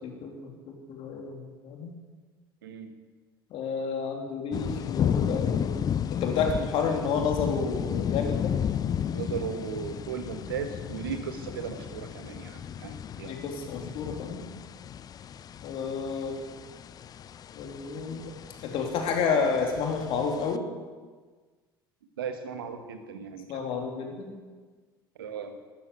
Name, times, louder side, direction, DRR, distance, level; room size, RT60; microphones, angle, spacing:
voice 1, 0.0-1.9 3.5-5.8 6.1-8.5 13.2-14.5 15.6-16.4 17.5-18.3 18.6-20.6 23.5-24.3, left 5 dB, 50° left, 2 dB, 3.2 m, -30 dB
sound 1, 4.5-20.6, left 8 dB, 30° left, 0.5 m, -33 dB
voice 2, 9.1-13.4 22.2-23.7 25.2-25.6, right 7 dB, 70° right, 8 dB, 1.6 m, -36 dB
13.0 x 13.0 x 8.3 m, 1.4 s
figure-of-eight pair, 65°, 12 cm